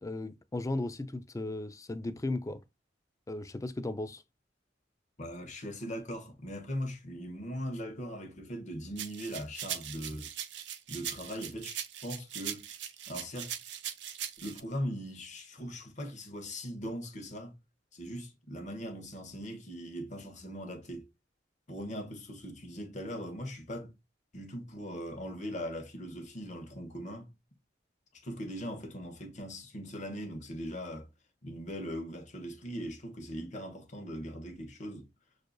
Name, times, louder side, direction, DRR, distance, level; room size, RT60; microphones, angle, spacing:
voice 1, 0.0-2.6 3.3-4.2, left 2 dB, 20° left, 0.4 m, -36 dB
voice 2, 5.2-10.3 10.9-12.7 13.1-13.5 14.4-17.5 17.9-21.1 21.7-23.9 24.3-27.3 28.1-31.1 31.4-35.1, equal, 40° left, 1.1 m, -40 dB
sound 1, 9.0-14.6, right 10 dB, 65° right, 0.5 m, -40 dB
6.4 x 2.5 x 2.2 m
head